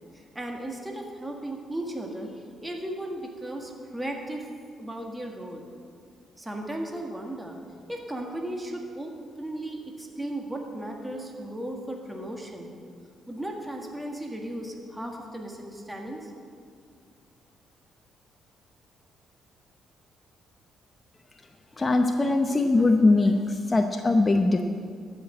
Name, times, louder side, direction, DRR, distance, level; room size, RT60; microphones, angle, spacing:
voice 1, 0.1-4.5 4.8-5.6 6.4-7.6 7.9-12.7 13.3-16.3, right 1 dB, 10° right, 1 dB, 1.6 m, -36 dB
voice 2, 21.8-23.4 23.7-24.6, left 2 dB, 25° left, 4 dB, 0.7 m, -21 dB
13.0 x 5.9 x 8.6 m, 2.2 s
cardioid pair, 90°, 0 cm